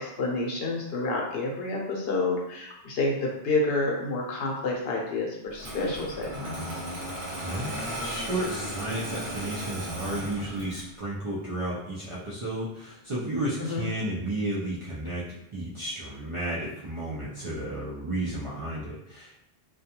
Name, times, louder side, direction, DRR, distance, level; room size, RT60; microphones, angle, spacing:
voice 1, 0.0-6.5 13.6-13.8, left 2 dB, 70° left, -1 dB, 0.8 m, -29 dB
Engine starting, 5.6-11.0, equal, 70° right, 1.0 m, -35 dB
voice 2, 7.4-19.4, right 1 dB, 45° right, -8 dB, 0.4 m, -33 dB
2.3 x 2.2 x 2.8 m, 0.81 s
omnidirectional pair, 1.0 m